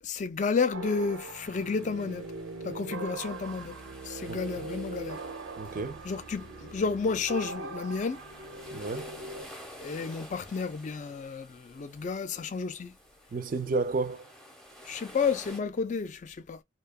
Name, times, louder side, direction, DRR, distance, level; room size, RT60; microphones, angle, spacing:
voice 1, 0.0-2.3 2.6-3.8 4.0-5.2 6.0-8.2 9.8-12.9 14.8-16.6, left 5 dB, 40° left, 0.3 m, -31 dB
sound 1, 0.7-9.5, right 3 dB, 90° right, 0.6 m, -41 dB
sound 2, 1.2-15.6, equal, 5° left, 0.6 m, -51 dB
voice 2, 5.6-6.0 8.7-9.1 13.3-14.3, right 3 dB, 45° right, 0.4 m, -31 dB
2.7 x 2.2 x 2.2 m
head